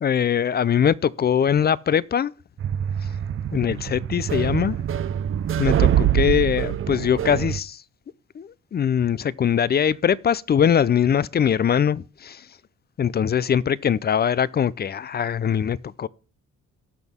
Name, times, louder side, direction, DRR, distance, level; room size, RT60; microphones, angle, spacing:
voice 1, 0.0-2.3 3.5-4.8 5.6-7.8 8.4-12.4 13.0-16.1, left 8 dB, 35° left, 0.4 m, -22 dB
sound 1, 2.6-7.6, right 10 dB, 45° right, 0.6 m, -24 dB
18.0 x 6.2 x 3.6 m
cardioid pair, 90°, 30 cm